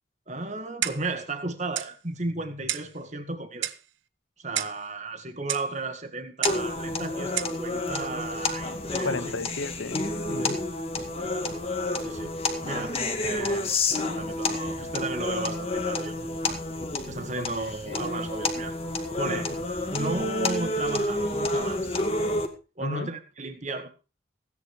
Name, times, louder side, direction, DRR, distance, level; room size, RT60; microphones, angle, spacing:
voice 1, 0.3-3.7 4.4-9.2 10.4-10.6 12.0-12.3 12.6-16.6 17.1-18.8 19.2-19.5 19.9-22.0 22.8-23.9, right 2 dB, 40° right, 2.0 m, -34 dB
Clock, 0.8-1.2 1.7-1.9 2.7-2.9 3.6-3.9 4.5-4.8 5.5-5.7 6.4-6.7 7.4-7.6, right 12 dB, 85° right, 0.9 m, -31 dB
sound 1, 6.5-22.5, left 2 dB, 30° left, 2.0 m, -29 dB
voice 2, 9.0-10.6 17.4-18.1 19.2-19.6 22.8-23.1, left 3 dB, 90° left, 0.9 m, -35 dB
16.5 x 9.9 x 4.7 m
head